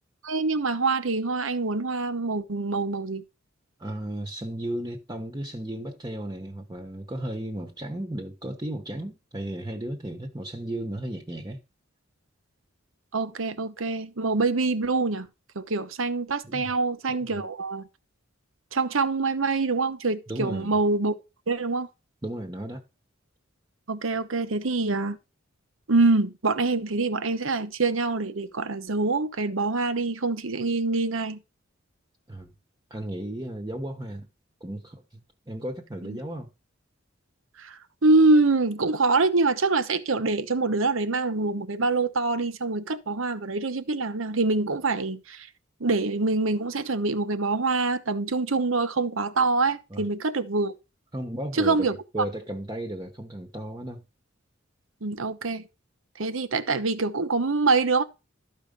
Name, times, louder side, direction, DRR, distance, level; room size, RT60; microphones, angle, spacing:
voice 1, 0.2-3.2 13.1-15.3 15.5-17.8 18.7-21.1 21.5-21.9 23.9-25.2 25.9-31.4 36.1-36.2 37.6-45.5 45.8-50.7 51.6-52.0 55.0-55.6 56.2-58.0, right 3 dB, 85° right, 1.1 m, -25 dB
voice 2, 3.8-11.6 16.4-16.7 17.1-17.3 20.3-20.8 22.2-22.8 32.3-32.5 32.9-34.3 34.6-35.2 35.5-36.5 49.9-50.1 51.1-54.0, right 1 dB, 20° right, 1.1 m, -34 dB
13.0 x 5.1 x 5.3 m
head